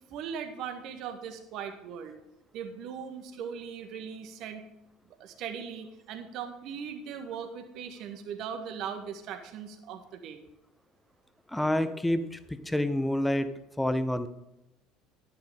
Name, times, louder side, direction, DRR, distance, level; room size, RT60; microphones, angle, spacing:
voice 1, 0.1-2.1 2.5-4.6 5.2-10.4, right 7 dB, 55° right, 6 dB, 1.7 m, -39 dB
voice 2, 11.5-13.5 13.8-14.3, left 1 dB, 5° left, 11 dB, 1.0 m, -28 dB
12.0 x 10.5 x 3.7 m, 0.89 s
figure-of-eight pair, 60°, 0 cm